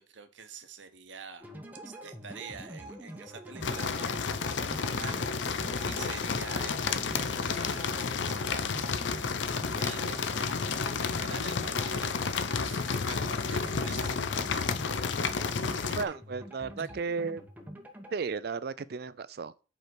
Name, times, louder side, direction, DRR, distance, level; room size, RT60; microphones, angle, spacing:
voice 1, 0.0-1.5 1.8-8.7 9.7-14.2 14.5-14.7 15.6-16.1, right 5 dB, 80° right, 1.0 m, -47 dB
sound 1, 1.4-18.1, equal, 10° right, 1.0 m, -46 dB
sound 2, 3.6-16.1, left 5 dB, 80° left, 0.6 m, -31 dB
voice 2, 16.0-17.4 18.1-19.5, right 5 dB, 55° right, 0.4 m, -34 dB
5.3 x 4.9 x 6.0 m
head